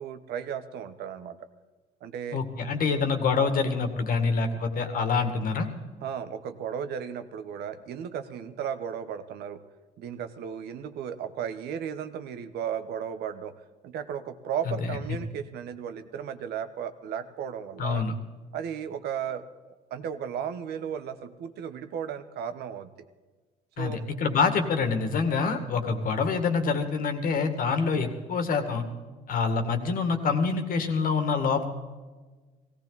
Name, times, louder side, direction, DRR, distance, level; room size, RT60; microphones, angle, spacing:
voice 1, 0.0-1.5 2.0-2.4 6.0-9.6 10.0-13.5 13.8-18.1 18.5-22.9 23.8-24.1, right 8 dB, 75° right, 10 dB, 1.2 m, -35 dB
voice 2, 2.3-5.7 17.8-18.1 23.8-28.8 29.3-31.7, left 5 dB, 55° left, 7 dB, 2.1 m, -26 dB
17.0 x 17.0 x 4.1 m, 1.3 s
cardioid pair, 110°, 17 cm